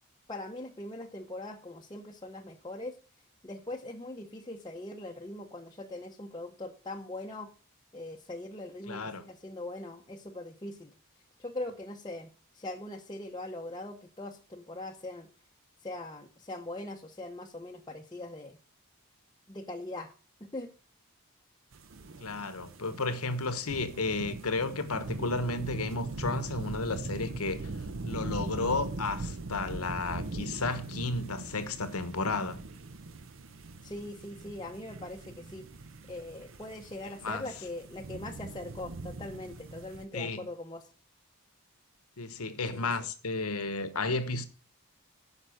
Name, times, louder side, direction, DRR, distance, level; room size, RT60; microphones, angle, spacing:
voice 1, 0.3-3.0 3.4-7.5 7.9-10.9 11.4-15.3 15.8-18.6 19.5-20.1 20.4-20.7 33.8-35.6 36.1-40.9 42.7-42.9, left 2 dB, 20° left, 0.7 m, -41 dB
voice 2, 8.9-9.2 22.2-27.6 28.0-32.6 37.2-37.5 40.1-40.5 42.2-44.4, left 3 dB, 85° left, 1.2 m, -33 dB
sound 1, 21.7-40.0, right 3 dB, 60° right, 0.7 m, -41 dB
11.0 x 5.6 x 6.3 m
head